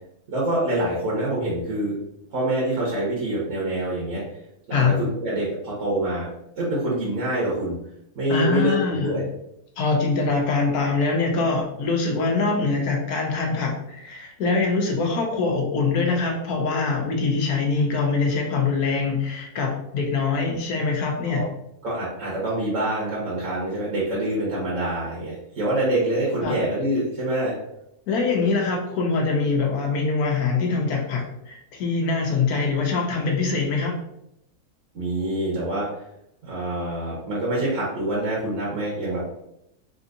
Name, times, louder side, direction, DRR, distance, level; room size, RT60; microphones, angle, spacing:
voice 1, 0.3-2.0 2.3-4.2 4.7-6.3 6.6-7.8 8.1-9.2 21.2-21.4 21.8-27.5 34.9-35.9 36.4-39.3, right 1 dB, 60° right, -6 dB, 1.3 m, -25 dB
voice 2, 8.3-9.2 9.8-21.4 26.4-26.6 28.1-33.9, left 4 dB, 85° left, 0 dB, 1.1 m, -23 dB
3.5 x 2.7 x 2.5 m, 0.81 s
omnidirectional pair, 1.6 m